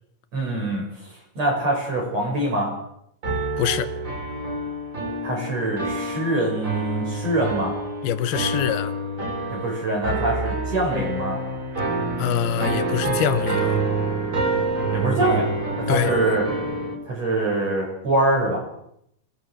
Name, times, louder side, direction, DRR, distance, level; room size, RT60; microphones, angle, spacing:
voice 1, 0.3-2.7 5.2-7.7 9.5-11.4 14.9-15.5 15.8-16.5 17.1-18.6, right 1 dB, 40° right, 7.7 m, -24 dB
sound 1, 3.2-17.0, right 2 dB, 20° right, 4.1 m, -27 dB
voice 2, 3.6-3.9 8.0-8.9 12.2-13.8 15.9-16.2, left 10 dB, 75° left, 2.9 m, -24 dB
26.5 x 20.0 x 6.4 m
omnidirectional pair, 4.6 m